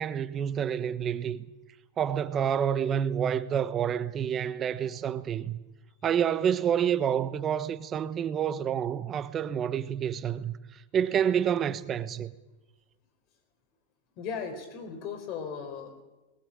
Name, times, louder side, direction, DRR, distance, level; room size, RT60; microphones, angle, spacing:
voice 1, 0.0-1.4 2.0-5.6 6.0-12.3, right 8 dB, 25° right, 1.1 m, -28 dB
voice 2, 14.2-16.0, left 6 dB, 45° left, 5.1 m, -37 dB
20.0 x 19.0 x 8.9 m
supercardioid pair, 135°, 0 cm